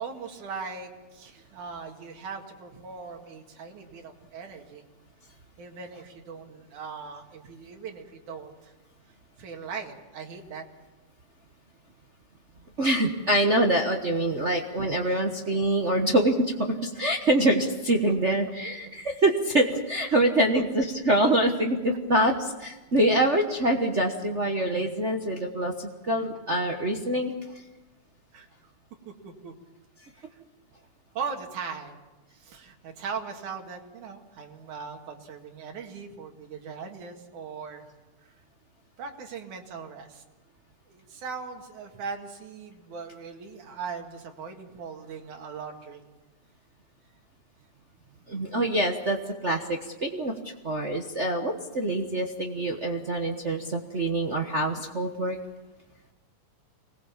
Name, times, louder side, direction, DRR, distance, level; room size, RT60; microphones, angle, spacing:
voice 1, 0.0-4.8 5.6-8.7 9.4-10.7 15.0-15.2 20.5-20.6 26.1-26.2 28.3-28.7 29.2-29.5 30.2-30.3 31.2-32.0 32.3-37.8 38.2-38.3 39.0-40.2 40.9-46.0, right 5 dB, 85° right, 3 dB, 3.5 m, -39 dB
voice 2, 12.8-27.3 48.3-50.3 50.6-55.4, right 1 dB, 65° right, 2 dB, 0.7 m, -25 dB
24.5 x 19.5 x 7.2 m, 1.1 s
omnidirectional pair, 3.4 m